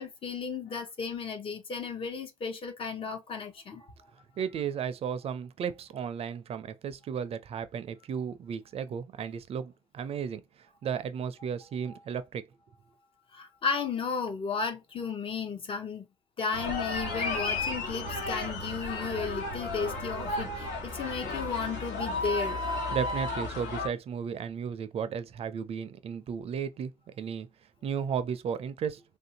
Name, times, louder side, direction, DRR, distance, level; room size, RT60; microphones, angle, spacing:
voice 1, 0.0-3.9 13.3-16.0 16.4-22.6, left 5 dB, 45° left, 0.8 m, -34 dB
voice 2, 4.4-12.4 22.9-26.9 27.2-27.5 27.8-29.0, right 7 dB, 50° right, 0.4 m, -34 dB
sound 1, 16.5-23.9, left 2 dB, 85° left, 1.4 m, -33 dB
3.2 x 2.6 x 2.8 m
cardioid pair, 115°, 13 cm